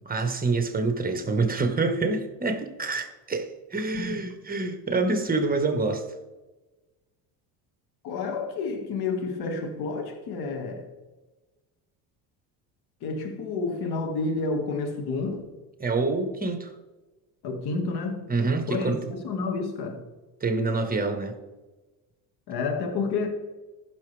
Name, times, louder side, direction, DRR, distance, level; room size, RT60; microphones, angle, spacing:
voice 1, 0.1-6.1 15.8-16.7 18.3-19.0 20.4-21.3, right 3 dB, 20° right, 1.5 m, -26 dB
voice 2, 4.0-4.3 8.0-10.9 13.0-15.5 17.4-18.2 18.7-20.0 22.5-23.3, left 4 dB, 65° left, 2.1 m, -30 dB
15.0 x 6.2 x 3.5 m
supercardioid pair, 85°, 41 cm